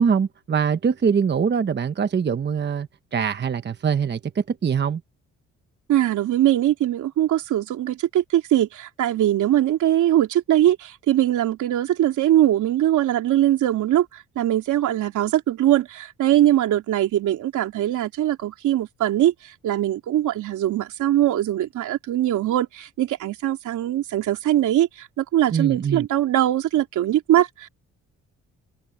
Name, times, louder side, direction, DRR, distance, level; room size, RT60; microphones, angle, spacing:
voice 1, 0.0-5.0 25.5-26.1, right 6 dB, 35° right, 1.1 m, -23 dB
voice 2, 5.9-14.1 14.3-27.7, right 12 dB, 80° right, 3.2 m, -21 dB
cardioid pair, 90°, 30 cm